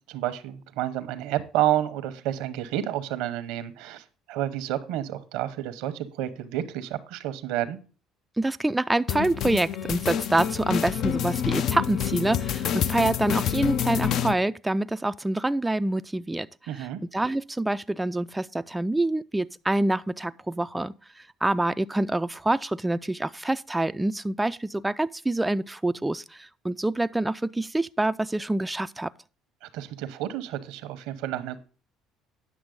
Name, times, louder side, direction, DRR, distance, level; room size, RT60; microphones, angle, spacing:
voice 1, 0.1-7.8 16.7-17.0 29.6-31.6, right 13 dB, 80° right, 0.9 m, -30 dB
voice 2, 8.4-16.5 16.7-29.1, right 2 dB, 10° right, 0.3 m, -26 dB
sound 1, 9.1-14.3, left 9 dB, 60° left, 0.5 m, -27 dB
9.5 x 6.2 x 3.8 m
supercardioid pair, 90°, 0 cm